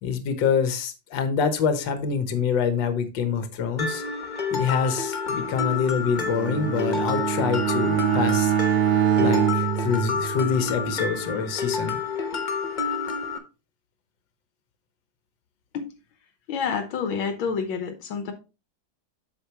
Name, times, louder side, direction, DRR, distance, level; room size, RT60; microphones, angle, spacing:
voice 1, 0.0-4.0 4.5-8.9 9.2-12.0, left 6 dB, 70° left, 8 dB, 1.7 m, -26 dB
Mallet percussion, 3.8-13.4, left 5 dB, 35° left, 0.8 m, -29 dB
Bowed string instrument, 6.1-10.8, right 10 dB, 90° right, 1.4 m, -24 dB
voice 2, 16.5-18.3, left 6 dB, 85° left, 7 dB, 1.7 m, -28 dB
8.1 x 6.5 x 2.9 m, 0.30 s
omnidirectional pair, 2.1 m